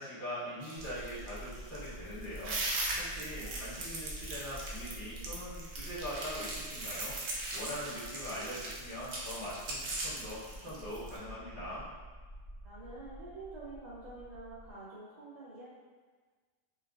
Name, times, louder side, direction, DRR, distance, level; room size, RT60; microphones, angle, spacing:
voice 1, 0.0-11.9, equal, 20° left, -13 dB, 1.2 m, -42 dB
sound 1, 0.6-11.2, right 2 dB, 80° right, 1.0 m, -39 dB
sound 2, 0.8-14.7, right 1 dB, 60° left, 1.5 m, -49 dB
voice 2, 12.6-15.7, right 2 dB, 50° right, -9 dB, 0.5 m, -47 dB
3.1 x 2.3 x 2.3 m, 1.4 s
omnidirectional pair, 1.3 m